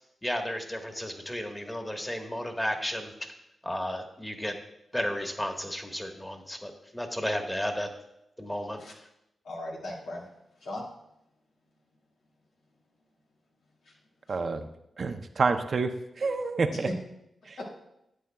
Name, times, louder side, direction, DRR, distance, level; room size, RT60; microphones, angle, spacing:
voice 1, 0.2-3.1 3.6-4.5 4.9-7.9 8.4-8.8, equal, 10° left, 4 dB, 1.4 m, -33 dB
voice 2, 9.4-10.2 10.6-10.8 13.9-14.0 14.3-14.4 16.7-16.8 17.6-17.7, left 1 dB, 90° left, -3 dB, 2.1 m, -38 dB
voice 3, 14.3-14.7 15.0-15.9 16.2-16.9 17.5-17.6, right 4 dB, 60° right, 8 dB, 0.6 m, -28 dB
11.0 x 8.3 x 2.3 m, 0.83 s
cardioid pair, 55°, 0 cm